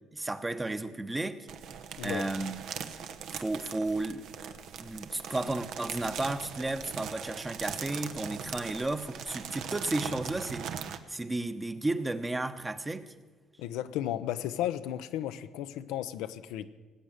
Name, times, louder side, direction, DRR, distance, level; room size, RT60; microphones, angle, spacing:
voice 1, 0.1-1.5 2.0-2.6 3.3-4.3 4.8-13.1, right 2 dB, 15° right, 9 dB, 1.0 m, -33 dB
sound 1, 1.5-11.0, right 7 dB, 70° right, 1.1 m, -40 dB
voice 2, 13.6-16.7, left 12 dB, 90° left, 10 dB, 0.7 m, -34 dB
18.5 x 8.1 x 8.9 m, 1.4 s
cardioid pair, 95°, 0 cm